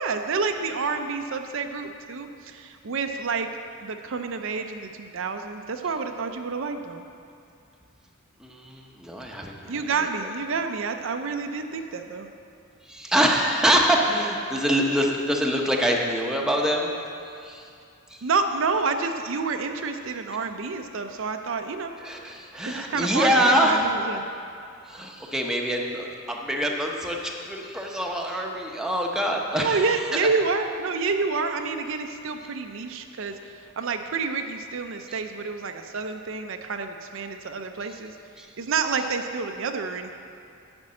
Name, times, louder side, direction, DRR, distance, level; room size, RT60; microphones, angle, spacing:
voice 1, 0.0-3.5 3.8-7.1 9.7-12.3 18.2-21.9 22.7-24.2 29.5-38.1 38.6-40.1, right 4 dB, 60° right, 6 dB, 0.5 m, -29 dB
voice 2, 8.4-10.3 12.8-16.9 17.2-17.7 18.1-18.3 22.0-23.9 24.8-30.3 35.1-35.2 38.4-38.5, equal, 5° right, -1 dB, 0.8 m, -25 dB
10.5 x 5.2 x 7.5 m, 2.5 s
head